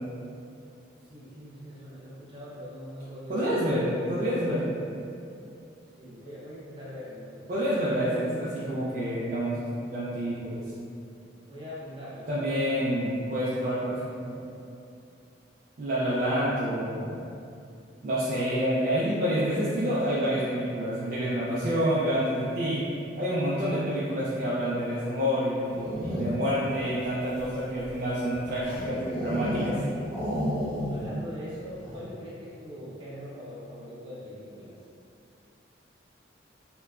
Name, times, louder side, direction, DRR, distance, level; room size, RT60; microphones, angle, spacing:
voice 1, 1.0-3.5 6.0-7.7 11.4-12.4 30.9-34.7, equal, 25° right, -10 dB, 0.7 m, -42 dB
voice 2, 3.3-4.9 7.5-9.6 9.9-10.6 12.3-14.5 15.8-17.2 18.0-22.8 23.2-29.8, equal, 45° right, -10 dB, 0.3 m, -28 dB
sound 1, 25.6-26.6 27.2-29.8 30.1-31.1 31.4-31.5 31.8-32.2, equal, 5° left, 0.8 m, -32 dB
2.9 x 2.2 x 2.3 m, 2.6 s
head